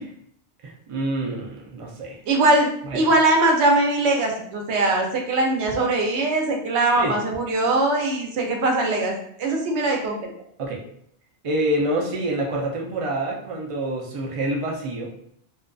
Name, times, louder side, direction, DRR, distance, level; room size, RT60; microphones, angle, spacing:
voice 1, 0.6-2.2 2.9-3.0 7.0-7.1 10.6-10.8 11.4-15.1, right 1 dB, 60° right, -1 dB, 0.3 m, -27 dB
voice 2, 2.3-10.2, right 2 dB, 85° right, 1 dB, 0.9 m, -21 dB
2.5 x 2.2 x 2.4 m, 0.68 s
omnidirectional pair, 1.1 m